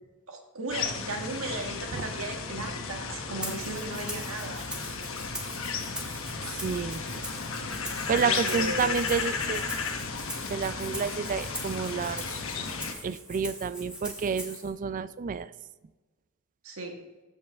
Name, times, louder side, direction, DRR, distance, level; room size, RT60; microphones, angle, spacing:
voice 1, 0.3-4.6 8.1-9.0 16.6-17.0, right 2 dB, 75° right, 3 dB, 1.5 m, -36 dB
sound 1, 0.7-12.9, left 5 dB, 70° left, 1.0 m, -34 dB
Rattle (instrument), 3.4-14.7, equal, 5° right, 1.7 m, -42 dB
voice 2, 6.6-7.0 8.1-9.6 10.5-12.2 13.0-15.5, right 6 dB, 40° right, 14 dB, 0.3 m, -30 dB
15.0 x 5.4 x 3.4 m, 1.2 s
head